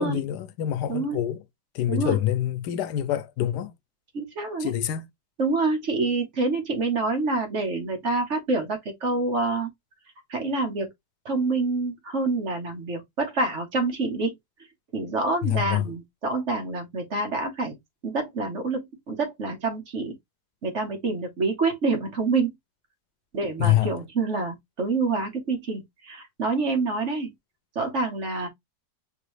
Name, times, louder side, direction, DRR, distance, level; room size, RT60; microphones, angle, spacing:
voice 1, 0.0-1.4 1.7-3.7 4.6-5.1 15.4-15.9 23.6-23.9, left 12 dB, 90° left, 1.2 m, -26 dB
voice 2, 4.1-4.7 5.4-9.7 10.3-10.9 11.2-14.3 14.9-17.7 18.0-20.1 20.6-22.5 23.3-27.3 27.7-28.5, right 3 dB, 50° right, 1.4 m, -27 dB
5.2 x 3.0 x 3.2 m
omnidirectional pair, 1.7 m